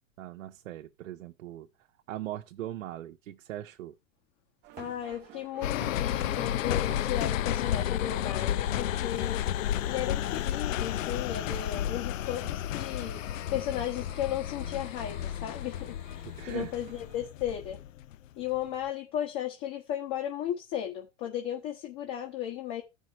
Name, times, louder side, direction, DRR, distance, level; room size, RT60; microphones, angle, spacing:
voice 1, 0.2-1.7 2.1-3.9 16.4-16.7, right 13 dB, 75° right, 0.9 m, -39 dB
sound 1, 4.6-17.2, right 10 dB, 25° right, 0.8 m, -52 dB
voice 2, 4.8-9.4 9.9-17.8 18.4-22.8, left 11 dB, 45° left, 1.4 m, -35 dB
sound 2, 5.6-18.1 18.5-18.6, left 12 dB, 85° left, 0.5 m, -32 dB
14.0 x 5.5 x 3.1 m
supercardioid pair, 140°, 38 cm